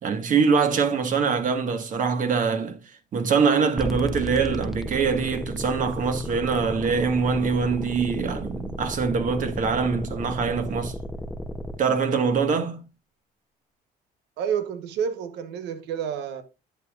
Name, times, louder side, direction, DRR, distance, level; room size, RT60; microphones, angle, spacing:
voice 1, 0.0-2.8 3.1-10.9 11.8-12.8, right 5 dB, 50° right, 1.7 m, -23 dB
sound 1, 3.8-11.8, equal, ahead, 0.8 m, -34 dB
voice 2, 14.4-16.4, right 8 dB, 85° right, 1.2 m, -29 dB
11.0 x 8.3 x 2.5 m
cardioid pair, 110°, 17 cm